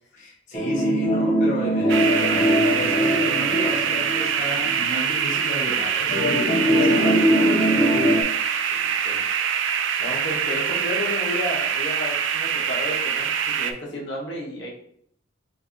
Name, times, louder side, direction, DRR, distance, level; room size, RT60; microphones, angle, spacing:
voice 1, 0.1-8.1, equal, 40° left, -6 dB, 1.1 m, -32 dB
sound 1, 0.5-4.9 5.3-5.4 6.1-8.2, equal, 20° left, 0.8 m, -21 dB
sound 2, 1.9-13.7, right 7 dB, 65° right, 0.4 m, -24 dB
voice 2, 6.6-7.4 8.7-9.2 10.0-14.7, left 1 dB, 60° left, -3 dB, 1.2 m, -32 dB
5.0 x 2.6 x 3.0 m, 0.65 s
head